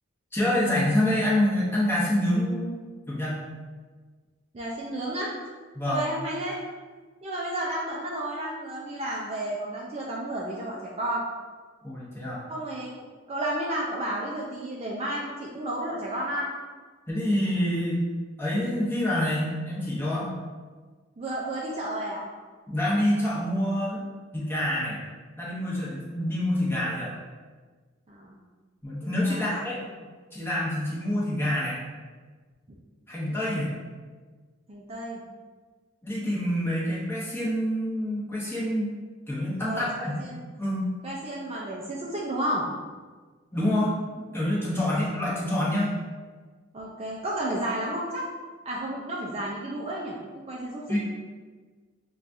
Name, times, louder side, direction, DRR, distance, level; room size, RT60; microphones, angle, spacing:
voice 1, 0.3-2.7 3.1-3.4 5.7-6.0 11.8-12.4 17.1-18.1 18.4-20.3 22.7-24.0 24.3-25.0 25.4-27.1 28.8-29.8 30.3-31.8 33.1-33.7 36.0-38.9 39.3-40.2 40.6-40.9 43.5-45.9 50.9-51.0, left 1 dB, 10° left, -7 dB, 0.8 m, -26 dB
voice 2, 4.5-5.3 5.9-6.6 7.2-11.2 12.5-12.9 13.3-16.5 21.2-22.2 28.1-28.4 29.2-29.6 33.3-33.6 34.7-35.2 39.6-39.9 40.2-40.4 41.0-42.7 44.9-45.0 46.7-48.3 48.7-51.0, right 1 dB, 30° right, -4 dB, 0.4 m, -32 dB
5.5 x 2.3 x 2.5 m, 1.4 s
head